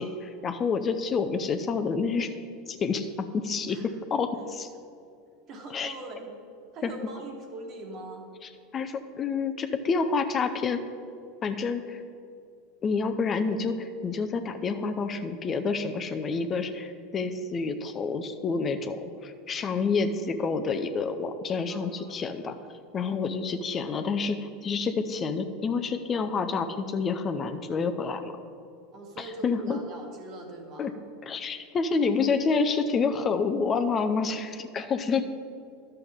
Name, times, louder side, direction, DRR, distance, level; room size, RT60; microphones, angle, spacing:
voice 1, 0.0-2.3 2.7-3.8 4.1-4.7 5.7-5.9 6.8-6.9 8.7-10.8 11.4-12.0 12.8-22.6 22.9-28.3 29.4-29.8 30.8-30.9 31.2-35.2, left 4 dB, 30° left, 7 dB, 0.6 m, -28 dB
voice 2, 3.7-4.0 5.5-6.4 6.7-8.2 21.7-22.2 28.9-30.9, right 2 dB, 45° right, 2 dB, 1.6 m, -42 dB
12.0 x 6.7 x 3.6 m, 2.5 s
hypercardioid pair, 85°, 0 cm